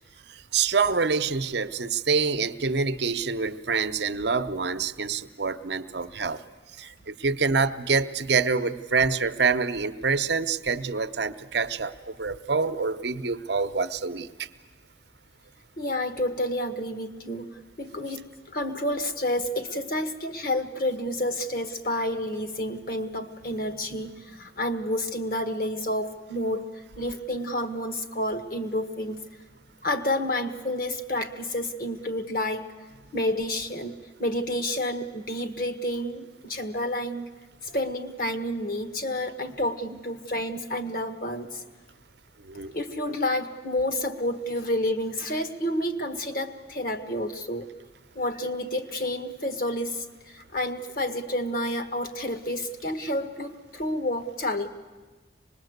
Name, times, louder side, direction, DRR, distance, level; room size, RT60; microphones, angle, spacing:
voice 1, 0.3-6.4 6.8-14.5 42.4-42.7, right 5 dB, 65° right, 11 dB, 0.8 m, -26 dB
voice 2, 15.8-29.2 29.8-32.7 33.1-33.9 34.2-37.3 37.6-41.6 42.7-47.7 48.1-54.7, left 1 dB, 50° left, 7 dB, 1.5 m, -30 dB
25.0 x 21.0 x 8.0 m, 1.3 s
head